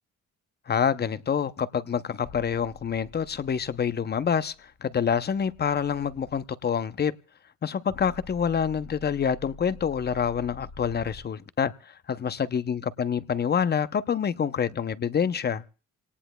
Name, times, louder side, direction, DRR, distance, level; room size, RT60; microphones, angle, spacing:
voice 1, 0.7-7.1 7.6-15.6, left 7 dB, 35° left, 0.6 m, -27 dB
sound 1, 4.6-6.4 7.9-11.2, left 3 dB, 60° left, 2.0 m, -48 dB
27.0 x 18.5 x 2.2 m
cardioid pair, 90°, 30 cm